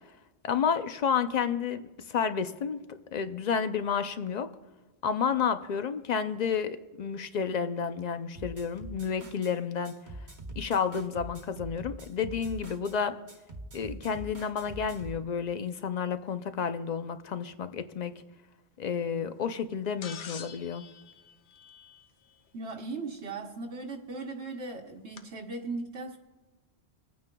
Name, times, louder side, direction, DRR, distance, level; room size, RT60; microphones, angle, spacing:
voice 1, 0.4-1.8 2.1-4.5 5.0-9.9 10.6-13.2 13.7-18.1 18.8-20.8, left 6 dB, 50° left, 10 dB, 0.5 m, -30 dB
sound 1, 8.4-9.5 9.9-13.0 13.3-15.2, right 1 dB, 45° right, 1.1 m, -44 dB
sound 2, 20.0-22.3 23.9-24.0 25.2-25.3, left 7 dB, 70° left, 1.0 m, -45 dB
voice 2, 22.5-26.2, right 3 dB, 75° right, 1 dB, 1.2 m, -38 dB
27.0 x 9.4 x 2.2 m, 1.1 s
omnidirectional pair, 1.2 m